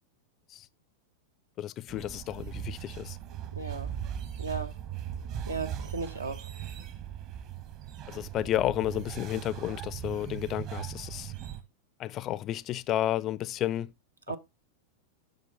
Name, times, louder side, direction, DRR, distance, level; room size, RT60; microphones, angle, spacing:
voice 1, 1.6-3.2 8.1-11.3 12.0-13.9, left 12 dB, 35° left, 0.4 m, -32 dB
sound 1, 1.9-11.6, right 10 dB, 40° right, 1.2 m, -39 dB
voice 2, 3.6-3.9 4.4-4.7 5.5-6.5 14.3-14.4, right 4 dB, 80° right, 0.8 m, -35 dB
7.6 x 6.2 x 3.9 m
figure-of-eight pair, 90°, 0 cm